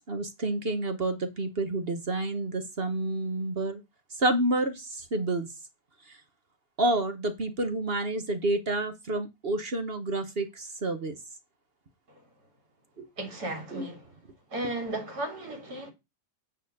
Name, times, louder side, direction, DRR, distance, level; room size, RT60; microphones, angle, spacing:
voice 1, 0.1-3.8 4.2-5.5 6.1-6.2 6.8-11.2 13.0-13.1 13.7-13.9, right 2 dB, 40° right, 1.1 m, -29 dB
voice 2, 13.2-14.1 14.5-15.9, right 1 dB, 60° right, 2.9 m, -35 dB
9.0 x 4.0 x 6.6 m
omnidirectional pair, 1.9 m